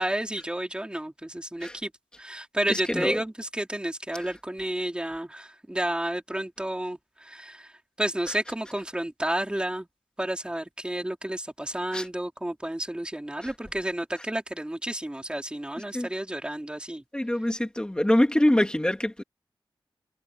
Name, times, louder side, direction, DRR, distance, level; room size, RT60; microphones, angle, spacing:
voice 1, 0.0-1.9 2.2-9.9 10.2-17.0, right 1 dB, 10° right, 4.8 m, -31 dB
voice 2, 17.1-19.2, left 1 dB, 10° left, 3.4 m, -24 dB
wide cardioid pair, 90°, 8 cm